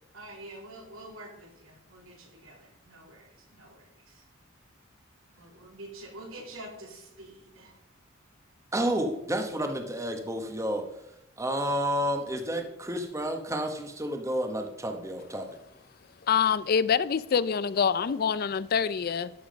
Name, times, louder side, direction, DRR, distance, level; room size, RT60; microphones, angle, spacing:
voice 1, 0.1-4.2 5.4-7.8, right 1 dB, 90° right, 2.9 m, -47 dB
voice 2, 8.7-10.8 11.4-15.5, right 1 dB, 15° right, 1.0 m, -30 dB
voice 3, 16.2-19.3, left 7 dB, 45° left, 0.4 m, -25 dB
12.5 x 7.3 x 5.2 m
head